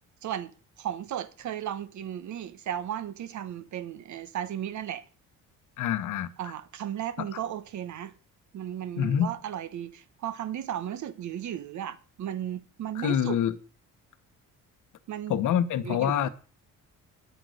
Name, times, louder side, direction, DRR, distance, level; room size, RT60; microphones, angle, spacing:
voice 1, 0.2-0.5 0.8-5.0 6.4-8.1 8.5-13.4 15.1-15.5 15.8-16.3, right 10 dB, 65° right, 1.2 m, -35 dB
voice 2, 5.8-6.3 7.2-7.4 9.0-9.3 12.9-13.5 15.3-16.3, left 9 dB, 70° left, 1.1 m, -26 dB
9.7 x 8.3 x 6.5 m
cardioid pair, 125°, 31 cm